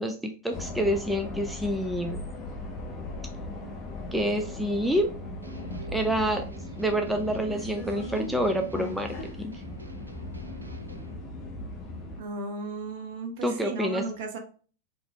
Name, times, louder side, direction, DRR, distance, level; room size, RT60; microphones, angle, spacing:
voice 1, 0.0-2.2 4.1-5.1 5.9-6.4 6.8-9.6 13.4-14.0, equal, 5° right, 4 dB, 0.4 m, -27 dB
sound 1, 0.5-12.2, left 2 dB, 25° left, 1.0 m, -38 dB
sound 2, 5.4-11.1, right 2 dB, 80° right, 0.5 m, -45 dB
voice 2, 12.2-14.4, right 3 dB, 50° right, 3 dB, 1.0 m, -35 dB
3.9 x 3.0 x 3.3 m, 0.39 s
figure-of-eight pair, 90°, 0 cm